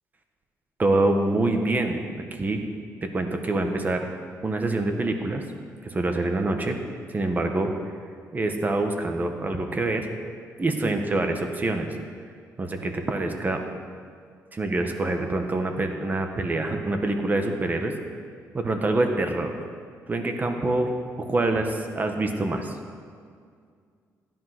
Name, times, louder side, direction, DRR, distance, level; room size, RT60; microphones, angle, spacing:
voice 1, 0.8-2.0 2.4-2.6 3.0-4.0 4.4-5.4 5.8-6.8 7.1-7.7 8.3-10.1 10.6-11.9 12.6-13.6 14.5-17.9 18.5-19.5 20.1-20.9 21.2-22.7, right 2 dB, 30° right, 4 dB, 1.7 m, -25 dB
15.5 x 11.0 x 6.3 m, 2.2 s
cardioid pair, 95°, 6 cm